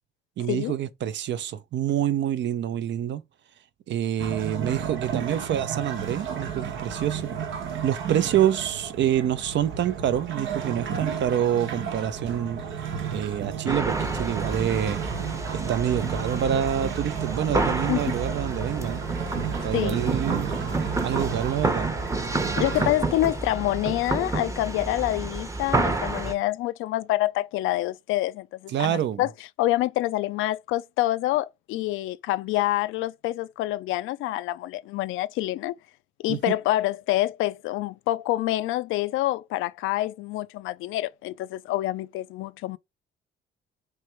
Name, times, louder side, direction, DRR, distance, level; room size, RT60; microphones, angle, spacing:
voice 1, 0.4-3.2 3.9-7.3 7.8-15.0 15.5-19.0 19.6-20.5 21.0-21.9 28.7-29.3 36.3-36.4, right 10 dB, 65° right, 0.6 m, -27 dB
sound 1, 4.2-22.9, right 7 dB, 80° right, 1.1 m, -33 dB
sound 2, 13.7-26.3, right 2 dB, 15° right, 0.8 m, -29 dB
voice 2, 22.6-29.3 29.6-35.7 36.2-42.8, left 15 dB, 90° left, 0.4 m, -27 dB
3.2 x 3.2 x 4.5 m
cardioid pair, 90°, 20 cm